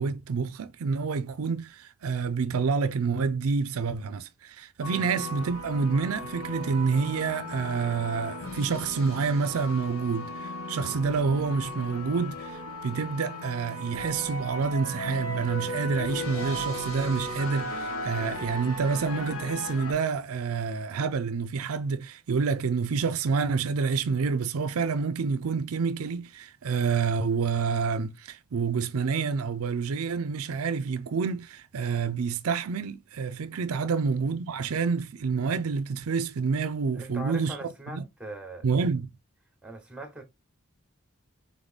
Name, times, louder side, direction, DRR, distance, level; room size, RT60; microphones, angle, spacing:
voice 1, 0.0-37.5 37.9-38.0 38.6-39.1, right 5 dB, 80° right, 0.5 m, -28 dB
sound 1, 4.8-19.9, left 1 dB, 75° left, 1.3 m, -36 dB
voice 2, 36.9-38.7 39.6-40.2, right 2 dB, 5° right, 1.0 m, -41 dB
4.0 x 3.6 x 3.5 m
head